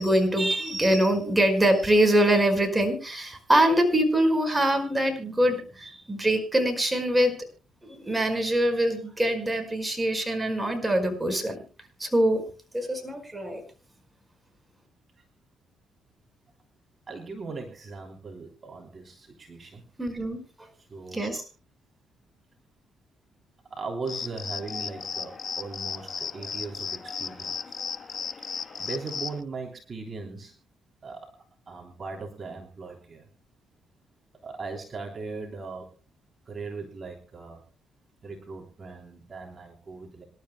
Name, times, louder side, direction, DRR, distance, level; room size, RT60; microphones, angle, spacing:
voice 1, 0.0-7.4 7.8-11.6 12.0-12.4 12.7-13.6 20.0-20.4 21.1-21.4, right 1 dB, 10° right, 5 dB, 5.0 m, -24 dB
voice 2, 17.1-19.8 20.8-21.2 23.7-27.5 28.8-30.5 31.0-33.2 34.4-35.9 36.4-37.6 38.2-40.2, right 4 dB, 40° right, 1 dB, 3.2 m, -39 dB
sound 1, 24.1-29.4, left 6 dB, 45° left, 1.2 m, -35 dB
26.5 x 12.5 x 2.2 m, 0.32 s
cardioid pair, 90°, 0 cm